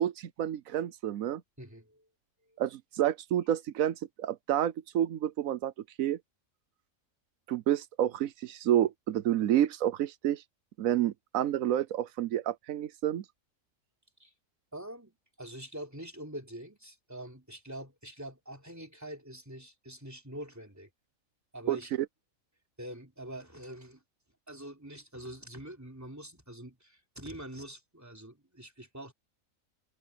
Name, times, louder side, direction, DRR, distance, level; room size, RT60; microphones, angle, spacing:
voice 1, 0.0-1.4 2.6-5.7 6.0-6.2 7.5-10.4 10.8-13.2 21.7-21.8, right 11 dB, 85° right, 1.1 m, -29 dB
voice 2, 1.6-2.1 2.5-2.6 14.2-14.3 14.7-20.9 21.5-21.9 22.8-24.0 24.5-29.1, right 1 dB, 10° right, 3.6 m, -45 dB
omnidirectional pair, 1.4 m